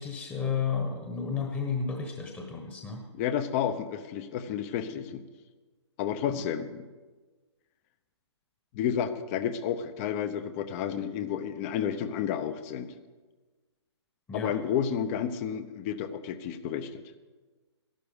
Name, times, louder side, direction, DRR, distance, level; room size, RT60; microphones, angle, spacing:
voice 1, 0.0-3.0 6.3-6.4 14.3-14.5, left 5 dB, 10° left, 2 dB, 1.2 m, -32 dB
voice 2, 3.2-5.2 6.0-6.9 8.7-12.9 14.3-17.0, left 8 dB, 30° left, 12 dB, 0.8 m, -31 dB
13.5 x 12.0 x 5.3 m, 1.3 s
hypercardioid pair, 135°, 15 cm